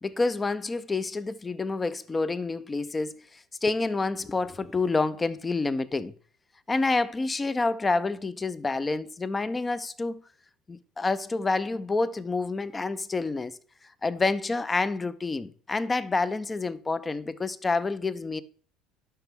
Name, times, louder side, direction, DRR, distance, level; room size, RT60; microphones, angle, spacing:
voice 1, 0.0-6.1 6.7-10.2 10.7-13.6 14.0-18.4, left 3 dB, 20° left, 0.6 m, -28 dB
11.5 x 5.9 x 3.5 m
hypercardioid pair, 65°, 0 cm